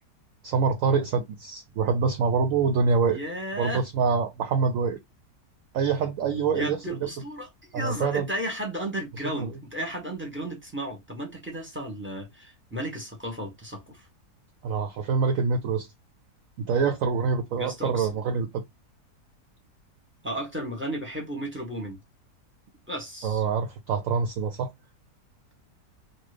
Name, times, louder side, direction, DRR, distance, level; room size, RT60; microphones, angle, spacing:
voice 1, 0.4-3.2 3.6-5.0 5.7-7.1 7.7-8.3 9.3-9.6 14.6-15.9 16.6-18.6 23.2-24.7, right 5 dB, 70° right, 0.8 m, -25 dB
voice 2, 3.1-3.8 6.5-14.1 17.6-18.1 20.2-22.0 22.9-23.4, equal, 10° right, 0.8 m, -34 dB
3.0 x 2.2 x 3.2 m
omnidirectional pair, 1.7 m